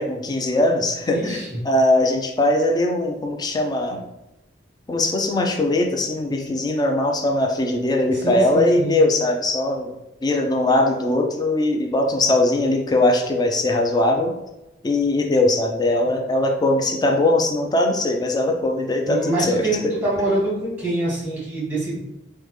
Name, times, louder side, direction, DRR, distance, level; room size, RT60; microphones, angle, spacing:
voice 1, 0.0-1.4 1.7-4.0 4.9-9.9 10.2-14.3 14.8-19.9, left 2 dB, 20° left, 2 dB, 0.3 m, -20 dB
voice 2, 1.1-1.5 8.1-8.9 19.0-22.0, right 2 dB, 10° right, -8 dB, 1.5 m, -25 dB
3.4 x 2.1 x 3.1 m, 0.97 s
head